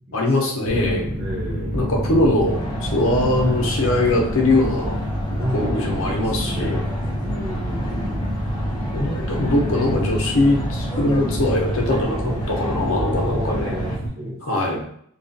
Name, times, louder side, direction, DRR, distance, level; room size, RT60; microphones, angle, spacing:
voice 1, 0.1-1.1 1.7-5.0 5.3-6.8 8.9-13.7 14.5-14.8, left 2 dB, 60° left, 0 dB, 0.6 m, -21 dB
sound 1, 0.6-14.1, equal, 15° right, 0.8 m, -27 dB
voice 2, 1.2-1.8 3.3-3.6 5.4-6.9 7.2-8.2 12.2-12.4 13.2-14.8, equal, 45° right, -5 dB, 1.0 m, -32 dB
sound 2, 2.4-14.0, equal, 20° left, 0.5 m, -35 dB
2.6 x 2.3 x 2.6 m, 0.68 s
head